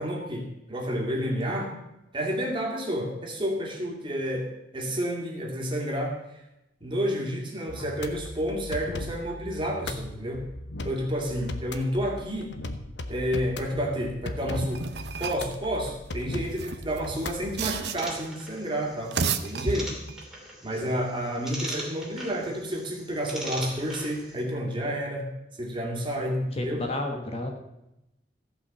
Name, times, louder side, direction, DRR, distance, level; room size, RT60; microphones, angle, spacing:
voice 1, 0.0-1.7 2.1-6.4 6.8-10.4 10.8-12.5 13.1-14.9 15.2-19.2 19.4-20.0 20.6-25.3 25.6-26.8, equal, 30° right, 0 dB, 2.4 m, -30 dB
sound 1, 7.7-17.9, left 2 dB, 85° left, 0.9 m, -38 dB
sound 2, 14.5-15.5 16.4-18.3 18.9-20.2, right 5 dB, 70° right, 0.8 m, -32 dB
sound 3, 18.0-24.4, right 1 dB, 5° right, 2.6 m, -40 dB
voice 2, 26.1-27.5, left 1 dB, 35° left, 3 dB, 1.4 m, -33 dB
15.0 x 5.6 x 7.4 m, 0.90 s
head